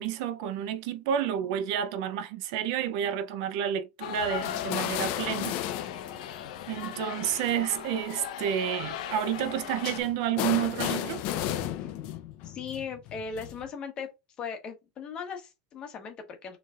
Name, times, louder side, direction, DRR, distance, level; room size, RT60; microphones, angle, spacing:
voice 1, 0.0-5.6 6.7-11.2, right 10 dB, 50° right, 0.5 m, -30 dB
sound 1, 4.0-10.0, left 10 dB, 70° left, 0.8 m, -38 dB
sound 2, 4.4-7.5 8.1-8.2 9.8-13.7, left 12 dB, 40° left, 0.5 m, -34 dB
voice 2, 12.4-14.1 14.4-16.6, left 6 dB, 25° left, 1.1 m, -38 dB
6.6 x 3.2 x 2.4 m
supercardioid pair, 170°, 4 cm